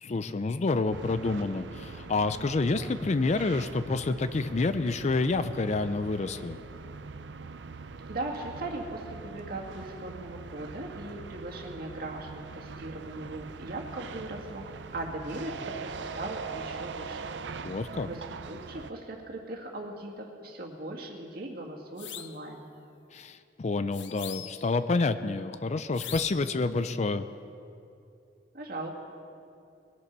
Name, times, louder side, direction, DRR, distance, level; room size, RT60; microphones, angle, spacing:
voice 1, 0.0-6.6 17.6-18.1 23.1-27.2, left 3 dB, 40° left, 12 dB, 0.4 m, -28 dB
sound 1, 0.9-18.9, right 4 dB, 75° right, 0.5 m, -42 dB
voice 2, 8.1-14.7 14.9-17.3 17.6-17.7 18.0-22.7 28.5-28.9, right 2 dB, 55° right, -1 dB, 2.1 m, -39 dB
sound 2, 22.0-22.4 23.9-24.7 25.9-26.6, left 10 dB, 80° left, 0.7 m, -41 dB
21.5 x 8.4 x 6.0 m, 2.6 s
head